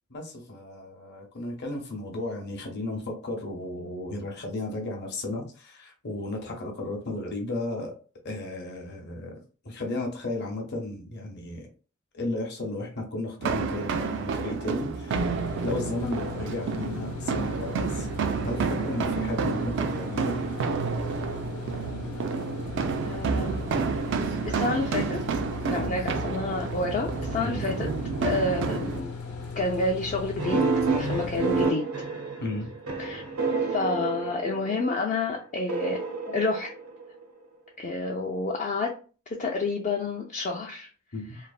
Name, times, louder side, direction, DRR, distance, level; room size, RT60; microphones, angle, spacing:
voice 1, 0.1-7.9 8.2-9.4 9.6-11.7 12.1-15.3 15.6-18.1 18.4-21.2 24.2-24.7 25.5-26.0 27.4-27.6 32.4-32.7 36.3-36.4 41.1-41.4, left 2 dB, 50° left, 1 dB, 0.7 m, -34 dB
sound 1, 13.4-29.0, right 5 dB, 55° right, 0.3 m, -30 dB
sound 2, 15.1-31.7, left 4 dB, 80° left, 0.8 m, -38 dB
voice 2, 23.0-23.7 24.5-25.2 25.7-27.9 28.2-29.1 29.6-31.9 33.0-33.2 33.7-36.0 36.3-36.7 37.8-38.9 39.4-40.9, left 3 dB, 35° left, 0 dB, 0.3 m, -29 dB
sound 3, 30.4-34.9 35.7-37.2, right 4 dB, 80° right, 0.7 m, -28 dB
3.1 x 2.0 x 2.3 m, 0.37 s
head